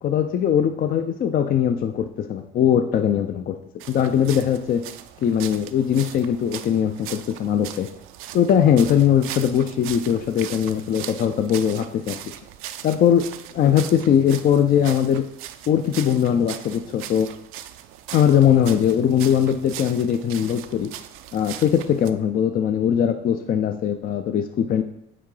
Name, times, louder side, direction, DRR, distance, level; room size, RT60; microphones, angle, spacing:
voice 1, 0.0-3.6 3.9-4.8 5.2-7.9 8.3-12.2 12.8-13.2 13.5-15.2 15.7-17.3 18.1-20.9 21.3-24.8, left 9 dB, 45° left, 7 dB, 0.4 m, -20 dB
sound 1, 3.8-22.1, right 12 dB, 80° right, 0.4 m, -39 dB
5.9 x 3.7 x 4.8 m, 0.76 s
cardioid pair, 105°, 21 cm